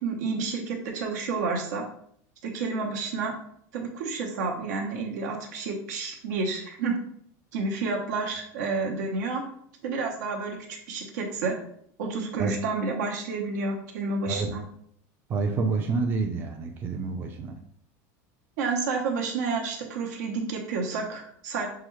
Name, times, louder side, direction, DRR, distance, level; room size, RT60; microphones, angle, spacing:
voice 1, 0.0-1.8 2.4-3.3 3.7-7.0 7.5-9.4 9.8-11.6 12.0-14.6 18.6-21.7, right 4 dB, 80° right, 1 dB, 1.0 m, -30 dB
voice 2, 15.3-17.6, right 4 dB, 25° right, 4 dB, 0.4 m, -28 dB
5.8 x 2.3 x 3.1 m, 0.69 s
supercardioid pair, 160°, 9 cm